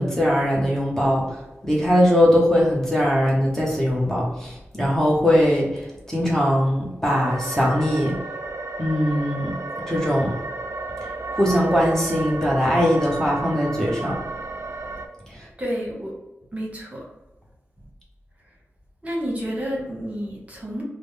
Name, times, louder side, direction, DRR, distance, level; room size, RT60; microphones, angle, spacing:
voice 1, 0.0-8.2 8.8-9.6 9.9-10.4 11.0-14.2 15.3-15.5, equal, 10° left, -4 dB, 0.9 m, -21 dB
sound 1, 7.1-15.1, right 3 dB, 70° right, 0.4 m, -33 dB
voice 2, 15.6-16.2 16.5-17.0 19.0-20.8, equal, 30° right, -3 dB, 1.1 m, -29 dB
3.6 x 2.1 x 3.3 m, 0.98 s
wide cardioid pair, 85°, 5 cm